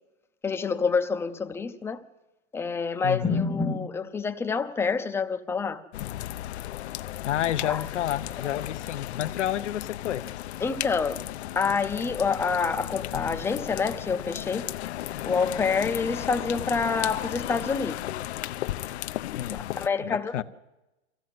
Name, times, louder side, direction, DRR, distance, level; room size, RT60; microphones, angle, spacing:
voice 1, 0.4-2.0 2.5-5.8 7.6-7.9 8.4-8.5 10.6-11.2 11.6-14.6 15.3-18.0 19.5-20.4, left 5 dB, 5° left, 0.6 m, -27 dB
voice 2, 3.0-3.4 7.2-10.3 19.3-19.7 20.0-20.4, left 11 dB, 85° left, 1.0 m, -30 dB
sound 1, 5.9-19.9, left 14 dB, 65° left, 0.7 m, -35 dB
23.0 x 15.5 x 7.8 m
hypercardioid pair, 145°, 35 cm